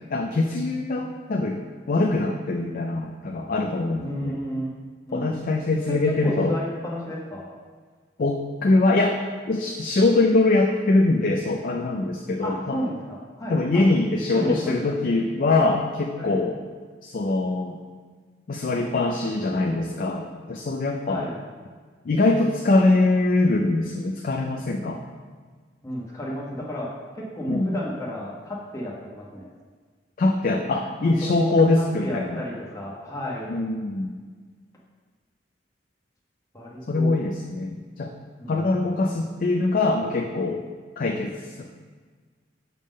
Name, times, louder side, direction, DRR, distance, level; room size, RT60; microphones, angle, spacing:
voice 1, 0.1-1.6 1.9-4.4 5.1-6.6 8.2-9.2 9.5-12.8 13.5-16.6 17.0-17.8 18.5-21.2 22.0-25.0 27.5-27.8 30.2-32.4 33.5-34.1 36.9-38.1 38.5-40.6 41.0-41.3 41.6-41.8, left 2 dB, 50° left, 2 dB, 0.4 m, -23 dB
voice 2, 4.0-4.7 5.1-5.4 6.0-7.5 12.4-13.8 14.4-15.0 16.2-16.4 21.1-21.4 25.8-29.5 31.0-33.5 36.5-37.1 38.4-38.8, equal, 20° left, -5 dB, 1.1 m, -32 dB
6.8 x 3.7 x 5.2 m, 1.5 s
head